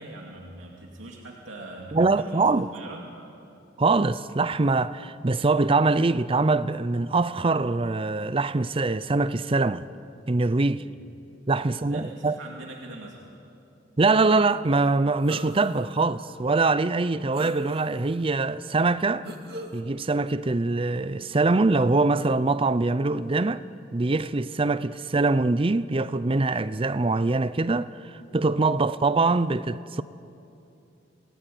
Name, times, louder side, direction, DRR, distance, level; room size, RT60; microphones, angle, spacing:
voice 1, 0.0-3.0 10.8-11.0 11.6-13.2, right 2 dB, 85° right, 2.5 m, -42 dB
voice 2, 1.9-2.7 3.8-9.9 10.3-10.9 11.5-12.4 14.0-19.3 19.7-23.6 23.9-30.0, right 3 dB, 30° right, 0.5 m, -23 dB
sound 1, 15.2-15.9 16.4-16.5 17.3-18.1 19.2-19.8, right 1 dB, 55° right, 2.3 m, -40 dB
27.0 x 19.0 x 9.4 m
head